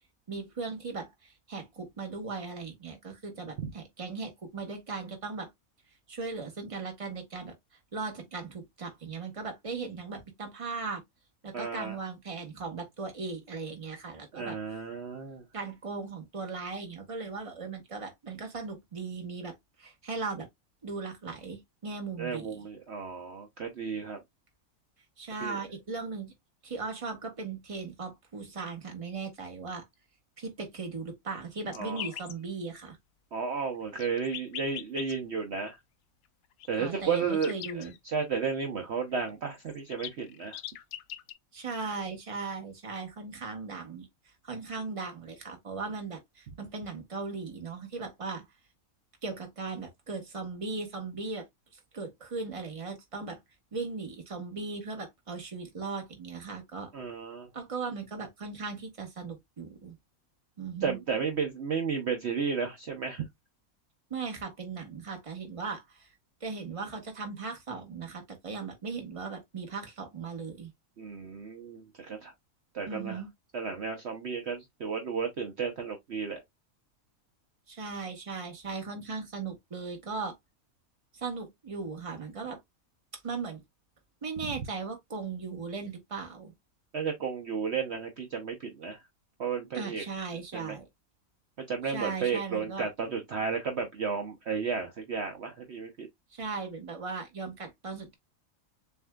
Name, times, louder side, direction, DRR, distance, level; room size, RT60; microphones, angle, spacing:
voice 1, 0.3-5.5 6.1-7.5 7.9-11.0 11.4-14.6 15.5-19.5 19.8-20.5 20.8-22.7 25.2-26.3 26.6-29.8 30.4-33.0 36.8-37.9 41.5-44.1 44.4-48.4 49.2-51.4 51.9-53.4 53.7-56.9 57.5-60.0 60.6-61.0 64.1-66.1 66.4-70.7 72.8-73.3 77.7-80.3 81.1-82.6 83.1-83.6 84.2-86.5 89.7-90.8 91.8-92.9 96.3-98.1, right 4 dB, 25° right, 1.2 m, -38 dB
voice 2, 11.5-12.0 14.3-15.4 22.2-24.2 25.4-25.6 31.7-32.0 33.3-35.8 36.7-40.6 56.9-57.5 60.8-63.2 71.0-72.3 72.7-73.2 73.5-76.4 86.9-89.0 89.4-90.0 90.5-90.8 91.7-96.1, right 5 dB, 55° right, 1.0 m, -33 dB
sound 1, 31.7-32.3 33.8-35.1 36.6-38.0 39.3-39.4 39.5-41.3, left 11 dB, 75° left, 1.0 m, -41 dB
6.9 x 2.7 x 2.3 m
omnidirectional pair, 1.5 m